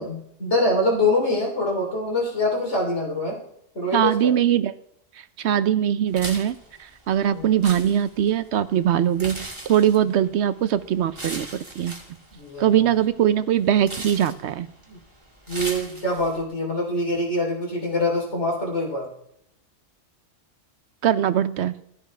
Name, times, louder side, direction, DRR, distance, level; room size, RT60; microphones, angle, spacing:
voice 1, 0.0-3.4 3.7-4.3 7.3-7.6 12.3-12.8 14.9-15.0 15.5-19.1, left 1 dB, 70° left, -2 dB, 3.8 m, -24 dB
voice 2, 3.9-4.7 5.4-11.5 11.8-11.9 12.6-14.7 21.0-21.7, right 10 dB, 70° right, 14 dB, 0.9 m, -21 dB
sound 1, 6.1-16.4, right 1 dB, 25° right, 2.2 m, -39 dB
15.0 x 13.0 x 3.3 m, 0.76 s
omnidirectional pair, 1.2 m